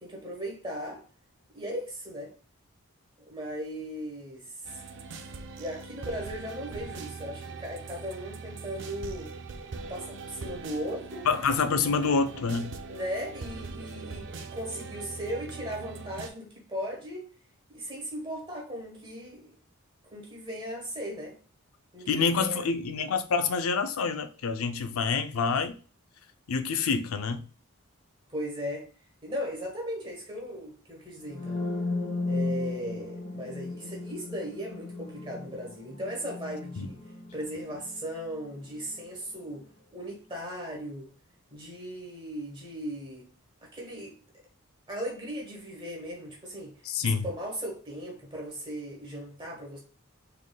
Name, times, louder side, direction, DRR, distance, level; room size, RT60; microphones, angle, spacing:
voice 1, 0.0-1.0 1.5-2.3 3.2-4.8 5.5-9.3 9.9-11.3 12.9-17.2 17.7-19.6 20.1-21.3 21.9-22.7 28.3-28.9 29.2-31.6 32.2-37.0 37.3-39.6 39.9-41.1 41.5-43.3 43.6-44.2 44.9-49.8, equal, 20° right, 1.1 m, -37 dB
sound 1, 4.6-16.3, right 4 dB, 55° right, 0.4 m, -41 dB
voice 2, 11.3-12.7 22.1-25.8 26.5-27.4 36.8-36.9 46.9-47.3, left 5 dB, 75° left, 0.4 m, -27 dB
sound 2, 31.2-39.1, left 3 dB, 60° left, 1.2 m, -35 dB
3.6 x 3.3 x 2.2 m
head